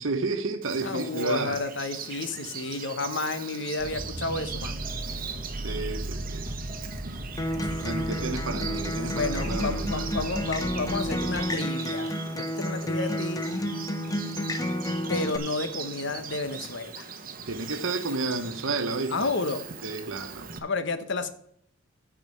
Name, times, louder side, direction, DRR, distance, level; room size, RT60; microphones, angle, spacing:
voice 1, 0.0-1.6 5.6-6.5 7.8-10.1 17.5-19.3 19.8-20.5, right 3 dB, 80° right, 1.1 m, -31 dB
Bird vocalization bird call bird song, 0.6-20.6, right 6 dB, 45° right, 1.0 m, -40 dB
voice 2, 0.8-4.8 9.1-13.5 15.1-17.1 19.1-19.7 20.6-21.3, left 3 dB, 60° left, 1.1 m, -31 dB
sound 1, 3.8-11.4, right 1 dB, 20° right, 1.4 m, -36 dB
Acoustic guitar, 7.4-15.4, left 1 dB, 20° left, 0.8 m, -31 dB
9.0 x 5.0 x 7.7 m
head